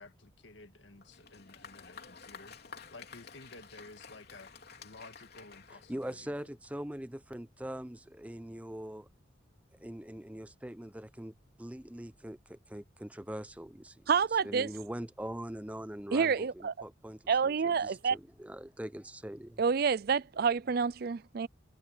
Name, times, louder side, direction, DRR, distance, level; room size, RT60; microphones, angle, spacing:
voice 1, 0.0-2.6 2.9-4.5 4.8-6.5, left 2 dB, 70° left, 1.8 m, -53 dB
Applause, 1.0-6.6, left 5 dB, 55° left, 3.6 m, -52 dB
voice 2, 5.9-9.1 9.8-14.1 14.4-19.6, right 1 dB, 5° right, 0.7 m, -42 dB
voice 3, 14.1-14.7 16.1-16.7 17.3-18.2 19.6-21.5, right 6 dB, 50° right, 0.4 m, -28 dB
head